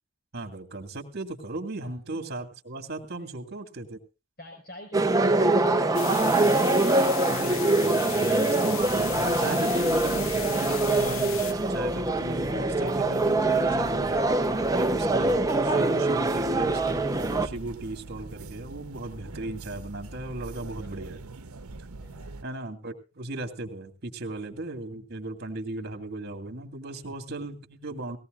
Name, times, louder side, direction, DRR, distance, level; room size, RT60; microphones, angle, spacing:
voice 1, 0.3-4.0 7.3-14.2 14.7-21.2 22.4-28.2, right 2 dB, 45° right, 5 dB, 2.4 m, -37 dB
voice 2, 4.4-7.1 21.9-22.3 26.9-27.0, equal, 45° left, 0 dB, 5.3 m, -47 dB
sound 1, 4.9-17.5, right 2 dB, 15° right, 0.8 m, -24 dB
sound 2, 5.9-11.5, left 10 dB, 65° left, 0.8 m, -37 dB
sound 3, 8.8-22.4, right 3 dB, 80° right, 1.0 m, -43 dB
19.0 x 17.5 x 2.5 m, 0.31 s
head